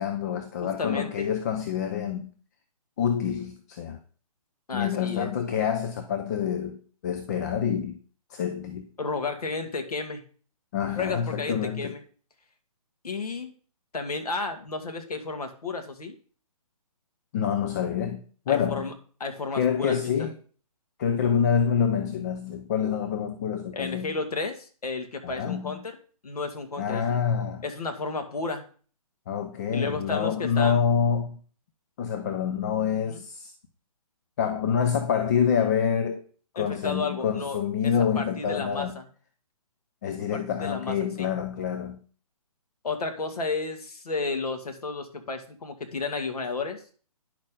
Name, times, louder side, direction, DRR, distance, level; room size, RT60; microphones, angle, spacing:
voice 1, 0.0-2.3 3.0-4.0 4.7-8.0 8.3-8.9 10.7-12.0 17.3-18.9 19.6-20.4 21.0-24.2 25.2-25.9 26.8-27.6 29.3-31.4 32.0-33.5 34.4-36.2 36.5-39.0 40.0-42.0, left 7 dB, 30° left, 0.6 m, -27 dB
voice 2, 0.6-1.3 4.7-5.3 9.0-10.2 11.0-12.0 13.0-13.5 13.9-16.2 18.5-18.9 19.2-20.1 23.7-25.9 26.2-27.2 27.6-28.7 29.7-30.8 33.1-33.2 36.6-37.6 37.8-39.0 40.0-41.3 42.8-46.8, left 3 dB, 85° left, 2.0 m, -32 dB
10.0 x 6.4 x 3.8 m
hypercardioid pair, 160°, 19 cm